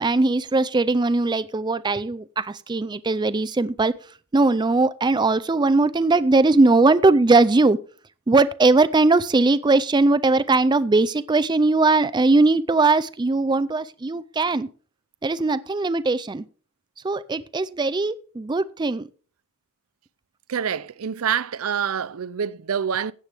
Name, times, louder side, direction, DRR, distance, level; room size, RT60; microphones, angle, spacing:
voice 1, 0.0-4.0 4.3-7.8 8.3-14.7 15.2-16.4 17.0-19.1, right 3 dB, 20° right, 0.4 m, -20 dB
voice 2, 20.5-23.1, right 7 dB, 85° right, 0.5 m, -26 dB
15.5 x 9.0 x 3.4 m
head